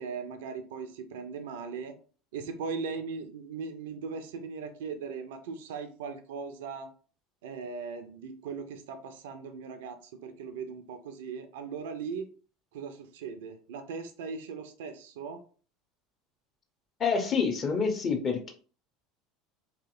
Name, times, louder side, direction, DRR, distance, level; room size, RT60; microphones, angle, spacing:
voice 1, 0.0-1.9 2.3-6.9 7.4-12.3 12.7-15.4, right 5 dB, 65° right, 9 dB, 0.3 m, -39 dB
voice 2, 17.0-18.5, left 5 dB, 35° left, 4 dB, 0.6 m, -27 dB
2.8 x 2.7 x 2.4 m, 0.40 s
figure-of-eight pair, 70°, 0 cm